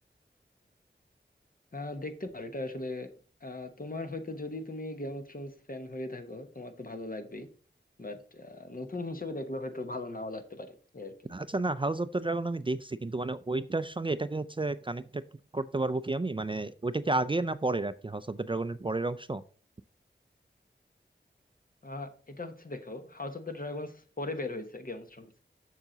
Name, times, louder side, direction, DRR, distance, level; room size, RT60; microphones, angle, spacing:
voice 1, 1.7-3.1 3.4-7.5 8.0-11.1 21.8-25.4, left 2 dB, 45° left, 7 dB, 1.1 m, -39 dB
voice 2, 11.3-15.2 15.5-19.4, right 2 dB, 25° right, 14 dB, 0.4 m, -31 dB
7.2 x 6.6 x 3.9 m, 0.39 s
wide cardioid pair, 65°, 20 cm